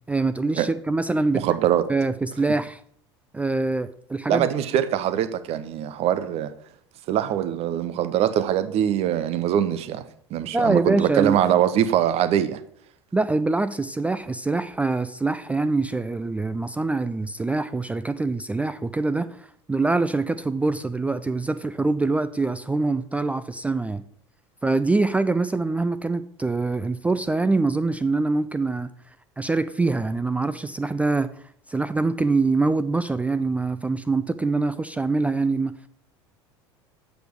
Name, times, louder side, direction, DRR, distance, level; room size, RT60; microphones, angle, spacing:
voice 1, 0.1-1.4 1.9-2.8 3.3-4.5 10.5-11.4 13.1-24.0 24.6-28.9 29.4-31.3 31.7-35.7, right 3 dB, 10° right, 0.3 m, -24 dB
voice 2, 1.3-1.8 4.3-6.5 7.1-10.0 10.3-12.6, right 10 dB, 45° right, 0.7 m, -23 dB
7.9 x 5.1 x 4.5 m
figure-of-eight pair, 70°, 14 cm